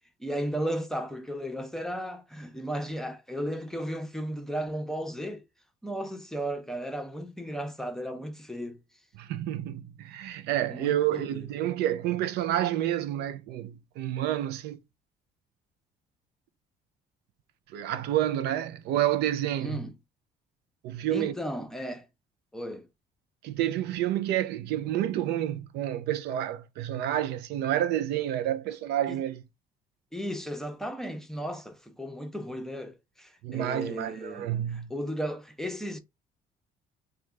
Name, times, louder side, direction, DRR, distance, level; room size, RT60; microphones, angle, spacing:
voice 1, 0.2-5.4 5.8-8.8 10.7-11.5 19.6-19.9 21.1-22.1 22.5-22.9 29.1-29.2 30.1-36.0, equal, 5° left, 0.6 m, -35 dB
voice 2, 9.2-14.8 17.7-19.9 20.8-21.4 23.4-29.4 33.4-34.9, right 12 dB, 80° right, 0.4 m, -29 dB
3.2 x 2.2 x 3.5 m
cardioid pair, 110°, 17 cm